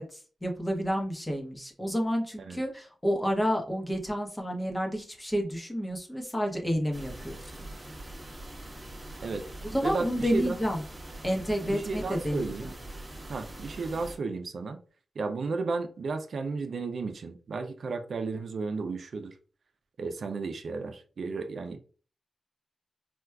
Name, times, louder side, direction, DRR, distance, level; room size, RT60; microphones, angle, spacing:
voice 1, 0.0-7.4 9.7-10.8 11.2-12.7, equal, 15° left, 0.9 m, -30 dB
sound 1, 6.9-14.2, right 1 dB, 25° right, 1.0 m, -43 dB
voice 2, 9.8-10.6 11.6-12.7 13.3-14.8 15.2-19.3 20.0-21.8, right 4 dB, 70° right, 0.4 m, -33 dB
4.4 x 2.2 x 2.3 m
wide cardioid pair, 85°, 0 cm